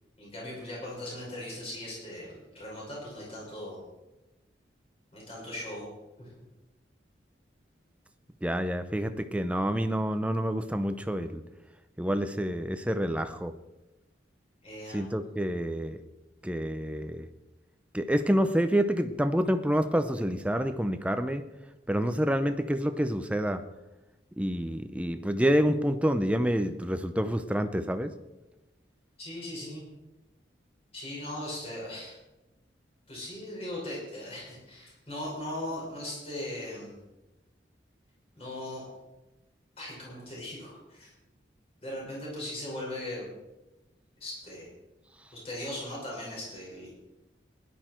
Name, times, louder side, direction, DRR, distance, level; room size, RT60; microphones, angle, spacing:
voice 1, 0.2-3.8 5.1-5.9 6.2-6.3 14.6-15.0 29.2-29.8 30.9-32.2 33.1-37.0 38.3-38.8 39.8-41.1 41.8-43.3 44.2-44.7 45.3-46.9, left 1 dB, 30° left, -4 dB, 5.7 m, -39 dB
voice 2, 8.4-11.4 12.0-13.5 14.9-16.0 16.4-17.3 17.9-21.5 21.9-23.6 24.4-28.1, equal, 5° right, 9 dB, 0.6 m, -28 dB
17.0 x 11.5 x 4.5 m, 1.0 s
head